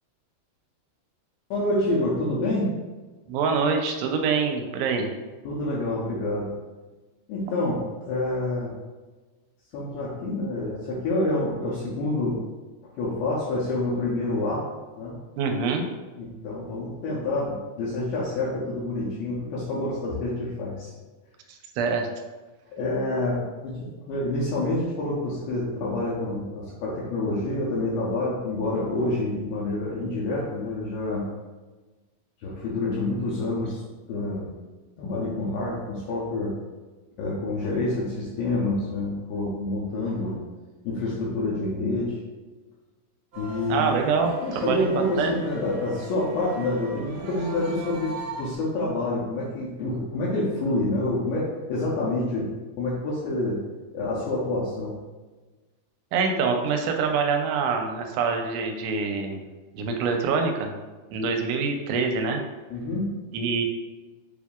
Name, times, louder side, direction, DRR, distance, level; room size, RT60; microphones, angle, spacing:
voice 1, 1.5-2.7 5.4-6.5 7.3-8.7 9.7-12.4 13.0-14.6 15.0-15.1 16.2-20.9 22.7-31.2 32.4-33.8 34.1-34.5 35.0-36.5 37.2-40.4 40.8-42.2 43.3-44.0 44.4-48.1 48.4-52.5 52.8-53.6 53.9-55.0 62.7-63.1, left 2 dB, 80° left, -6 dB, 2.2 m, -27 dB
voice 2, 3.3-5.1 15.4-15.9 21.5-22.1 43.7-44.9 45.2-45.3 56.1-59.4 59.7-60.7 61.1-62.4 63.3-63.7, right 5 dB, 85° right, 3 dB, 2.7 m, -25 dB
sound 1, 43.3-48.6, right 2 dB, 70° right, 1.6 m, -40 dB
6.8 x 2.7 x 2.4 m, 1.2 s
omnidirectional pair, 4.8 m